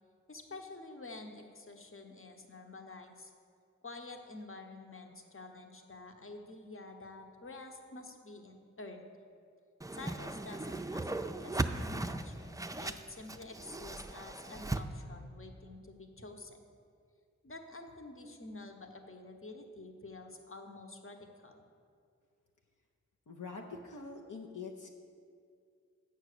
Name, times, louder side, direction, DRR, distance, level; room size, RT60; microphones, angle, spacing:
voice 1, 0.3-3.3 3.8-9.1 9.9-11.8 12.1-12.5 12.8-16.6 17.4-21.6, left 2 dB, 45° left, 4 dB, 1.0 m, -49 dB
Whoosh swoosh swish, 9.8-14.8, right 2 dB, 10° right, 0.4 m, -37 dB
voice 2, 23.3-24.9, left 4 dB, 75° left, 1 dB, 0.7 m, -44 dB
8.0 x 6.0 x 6.6 m, 2.3 s
cardioid pair, 45°, 31 cm